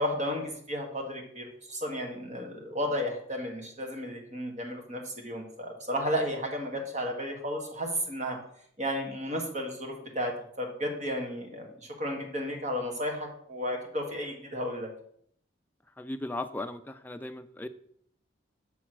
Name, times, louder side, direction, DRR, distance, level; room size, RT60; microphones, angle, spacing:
voice 1, 0.0-8.4 8.8-14.9, equal, 40° right, 2 dB, 1.5 m, -33 dB
voice 2, 16.0-17.7, left 2 dB, 10° left, 8 dB, 0.3 m, -37 dB
7.5 x 4.0 x 6.1 m, 0.66 s
head